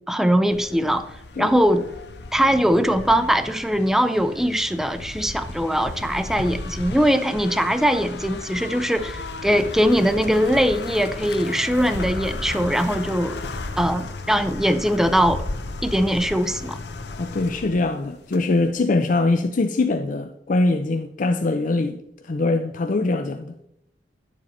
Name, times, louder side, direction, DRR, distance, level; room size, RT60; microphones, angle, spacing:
voice 1, 0.1-1.1 1.4-1.9 2.3-13.4 13.8-15.4 15.8-16.8, equal, ahead, 0.5 m, -21 dB
sound 1, 0.5-18.7, left 2 dB, 70° left, 0.9 m, -34 dB
voice 2, 17.2-23.5, left 2 dB, 50° left, 0.5 m, -23 dB
10.5 x 7.3 x 4.2 m
head